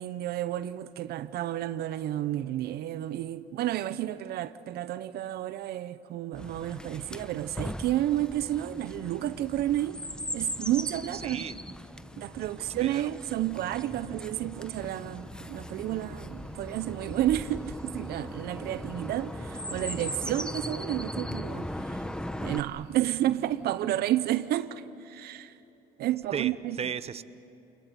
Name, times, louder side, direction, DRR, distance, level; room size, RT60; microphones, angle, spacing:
voice 1, 0.0-10.0 10.3-11.4 12.2-22.1 22.4-25.6 26.0-26.8, right 13 dB, 70° right, 0.7 m, -31 dB
Chirp tweet, 6.3-22.6, left 1 dB, 5° left, 0.9 m, -39 dB
voice 2, 11.1-11.5 12.5-13.1 26.3-26.5 26.8-27.2, right 7 dB, 35° right, 0.8 m, -35 dB
sound 1, 12.6-17.5 18.1-21.7, right 4 dB, 15° right, 4.1 m, -60 dB
sound 2, 14.6-23.8, right 3 dB, 90° right, 2.8 m, -54 dB
29.5 x 21.5 x 9.3 m
supercardioid pair, 85°, 17 cm